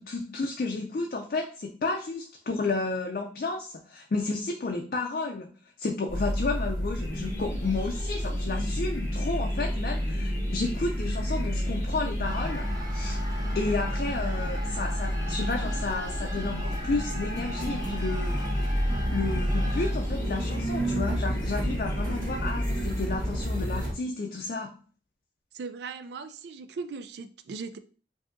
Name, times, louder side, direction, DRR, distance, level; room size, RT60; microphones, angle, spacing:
voice 1, 0.0-5.5 5.8-13.2 13.5-18.6 19.1-24.7, left 3 dB, 50° left, 0.4 m, -32 dB
sound 1, 6.1-23.9, equal, 45° right, 1.4 m, -30 dB
sound 2, 6.9-23.5, left 1 dB, 15° left, 0.8 m, -40 dB
sound 3, 12.2-19.9, equal, 20° right, 0.6 m, -41 dB
voice 2, 25.5-27.8, right 4 dB, 70° right, 0.3 m, -38 dB
4.8 x 2.7 x 2.5 m
head